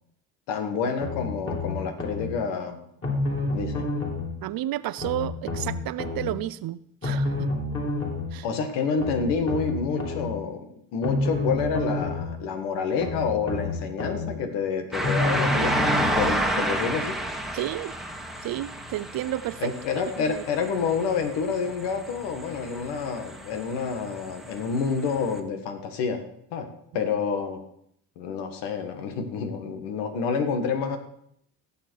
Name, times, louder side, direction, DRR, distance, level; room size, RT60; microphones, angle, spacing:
voice 1, 0.5-2.8 3.5-3.9 8.4-17.2 19.6-26.2 26.5-26.7 26.9-27.6 28.2-31.0, left 5 dB, 75° left, 7 dB, 1.8 m, -28 dB
sound 1, 1.0-2.3 3.0-4.3 5.0-6.3 7.0-8.3 9.0-10.3 11.0-12.3 13.0-14.3 15.0-16.3 17.0-17.1, left 2 dB, 30° left, 4.1 m, -29 dB
voice 2, 4.4-7.5 8.3-8.4 17.5-17.9 18.4-19.7 20.3-20.4, right 14 dB, 55° right, 17 dB, 0.7 m, -31 dB
sound 2, 14.9-25.4, right 1 dB, ahead, 1.5 m, -31 dB
18.5 x 7.3 x 4.7 m, 0.71 s
supercardioid pair, 80°, 42 cm